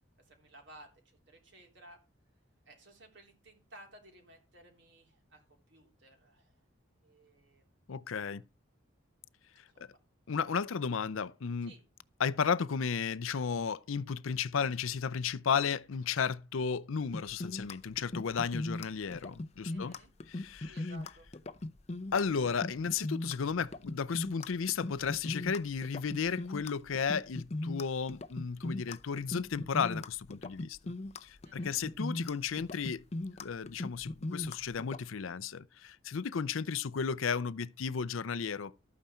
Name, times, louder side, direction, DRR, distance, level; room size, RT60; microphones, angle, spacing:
voice 1, 0.3-2.0 2.7-6.5 7.0-7.9 9.7-10.0 11.6-11.8 19.7-20.1 20.6-21.3 31.4-31.8, right 1 dB, 60° right, 3.4 m, -57 dB
voice 2, 7.9-8.4 9.8-9.9 10.3-11.7 12.2-19.9 20.3-20.9 22.1-30.9 31.2-33.0 33.4-38.7, left 6 dB, 75° left, 0.5 m, -34 dB
sound 1, 17.1-35.0, left 2 dB, 30° left, 0.5 m, -39 dB
12.5 x 9.2 x 4.4 m
head